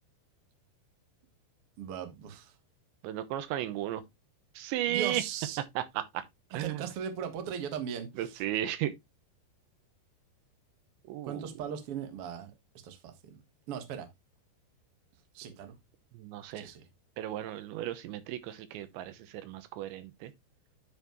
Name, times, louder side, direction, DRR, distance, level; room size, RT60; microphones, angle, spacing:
voice 1, 1.8-2.5 4.9-5.6 6.5-8.4 11.2-12.5 12.8-13.4 13.7-14.1 15.3-15.7 16.5-16.8, right 8 dB, 70° right, 1.4 m, -38 dB
voice 2, 3.0-4.0 4.6-5.2 5.8-6.2 6.5-6.8 8.2-8.9 11.1-11.4 16.1-16.7 17.2-20.3, right 12 dB, 85° right, 3.3 m, -34 dB
9.7 x 5.8 x 3.0 m
omnidirectional pair, 5.0 m